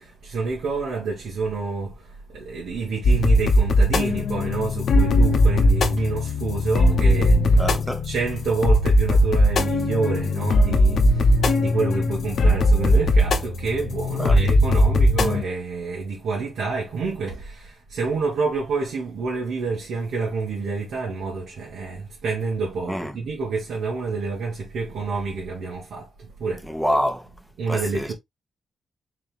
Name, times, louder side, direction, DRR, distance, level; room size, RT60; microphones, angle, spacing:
voice 1, 0.0-7.7 8.0-26.7 27.6-28.1, right 4 dB, 90° right, 1.5 m, -28 dB
sound 1, 3.0-15.4, left 1 dB, 70° left, 0.7 m, -19 dB
voice 2, 7.6-8.1 14.2-14.4 22.9-23.2 26.6-27.3 27.7-28.1, equal, ahead, 0.8 m, -26 dB
4.1 x 3.6 x 2.4 m
wide cardioid pair, 120°, 0 cm